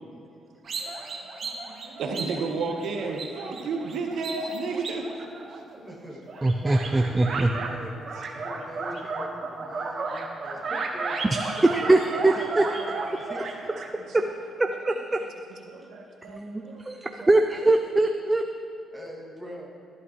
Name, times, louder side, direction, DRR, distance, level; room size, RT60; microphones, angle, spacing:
Squeaking Guinea Pigs, 0.7-5.9 6.3-7.7 8.0-13.9, right 3 dB, 50° right, 1.3 m, -34 dB
voice 1, 1.8-5.1 5.8-5.9 8.3-8.6 10.4-10.5 14.0-14.1 15.7-17.3, right 4 dB, 70° right, 2 dB, 1.2 m, -33 dB
voice 2, 5.7-6.2 6.8-7.9 8.3-9.3 9.6-10.1 10.4-13.7 15.8-15.9 18.9-19.7, equal, ahead, -2 dB, 2.2 m, -42 dB
voice 3, 6.4-7.5 9.3-9.4 11.2-12.6 14.1-14.2 14.6-15.2 16.3-18.4, right 2 dB, 15° right, 5 dB, 0.5 m, -23 dB
13.5 x 11.0 x 3.1 m, 2.6 s
cardioid pair, 90°, 0 cm